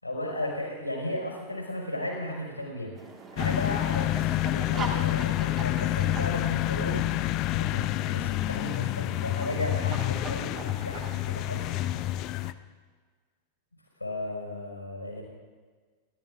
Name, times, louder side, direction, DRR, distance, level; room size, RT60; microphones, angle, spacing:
voice 1, 0.0-7.1 7.5-11.8 14.0-15.2, left 1 dB, 85° left, -2 dB, 5.0 m, -35 dB
sound 1, 3.0-12.1, right 3 dB, 25° right, 1.8 m, -42 dB
sound 2, 3.4-12.5, left 16 dB, 40° left, 0.5 m, -28 dB
30.0 x 14.0 x 2.6 m, 1.5 s
figure-of-eight pair, 90°, 0 cm